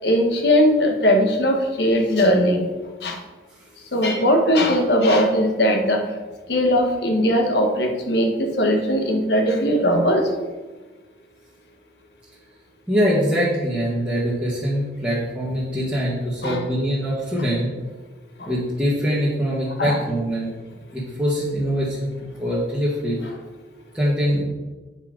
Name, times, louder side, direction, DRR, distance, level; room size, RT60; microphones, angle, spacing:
voice 1, 0.0-2.7 3.0-3.2 3.9-6.0 6.5-10.3 16.4-16.6 18.4-18.5 19.8-20.0, equal, 65° left, 3 dB, 1.2 m, -19 dB
voice 2, 12.9-17.7 18.5-20.5 20.9-22.1 22.4-23.2 23.9-24.4, equal, 5° right, -9 dB, 1.6 m, -23 dB
8.1 x 5.7 x 5.1 m, 1.3 s
head